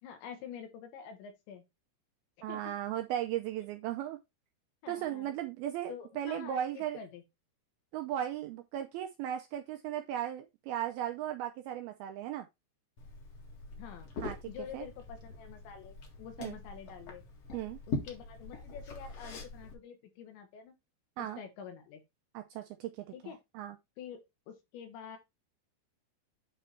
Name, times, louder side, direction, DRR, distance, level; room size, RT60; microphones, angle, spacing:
voice 1, 0.0-1.6 2.5-2.7 4.8-5.4 5.9-7.2 13.7-14.1 14.5-17.2 17.9-20.7 21.2-22.0 23.1-23.4 24.0-24.2 24.5-25.2, left 8 dB, 85° left, 3.7 m, -47 dB
voice 2, 2.4-4.2 4.9-7.0 7.9-12.5 14.2-14.4 14.7-14.9 16.4-16.6 17.5-17.8 21.2-21.4 22.3-23.1 23.5-23.8, right 11 dB, 85° right, 2.1 m, -36 dB
Liquid, 13.0-19.7, left 3 dB, 50° left, 2.0 m, -43 dB
8.9 x 3.4 x 4.3 m
omnidirectional pair, 5.1 m